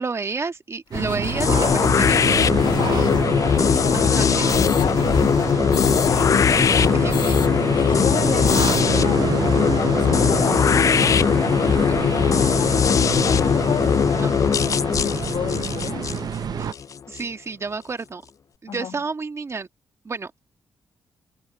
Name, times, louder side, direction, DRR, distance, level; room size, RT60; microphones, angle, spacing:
voice 1, 0.0-2.4 3.9-4.3 6.6-7.3 11.9-12.1 14.2-14.4 16.6-16.7 17.1-18.2 18.6-19.7 20.0-20.3, right 4 dB, 35° right, 1.5 m, -31 dB
sound 1, 0.9-7.5 7.8-7.9 8.2-8.8, left 7 dB, 65° left, 1.5 m, -31 dB
sound 2, 0.9-16.7, right 8 dB, 60° right, 0.5 m, -28 dB
sound 3, 1.4-17.2, left 7 dB, 45° left, 0.3 m, -20 dB
voice 2, 2.6-3.1 3.6-5.7 7.7-14.4 14.7-16.1 18.7-19.0, left 9 dB, 80° left, 1.4 m, -33 dB
cardioid pair, 80°, 8 cm